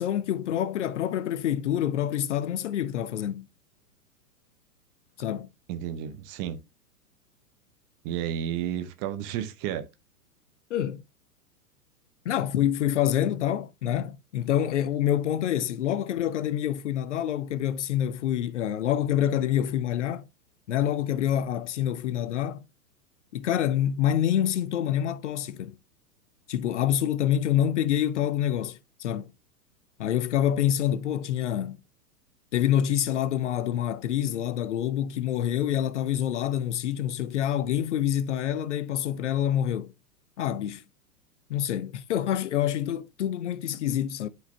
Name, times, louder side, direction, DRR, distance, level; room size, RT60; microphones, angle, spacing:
voice 1, 0.0-3.5 5.2-5.5 10.7-11.0 12.2-20.3 20.7-22.6 23.3-25.8 26.5-29.3 30.0-31.8 32.5-39.9 40.4-40.8 41.5-44.3, left 10 dB, 50° left, 0.7 m, -27 dB
voice 2, 5.7-6.6 8.0-9.9, right 10 dB, 25° right, 0.7 m, -32 dB
11.5 x 4.9 x 2.2 m
figure-of-eight pair, 105°, 46 cm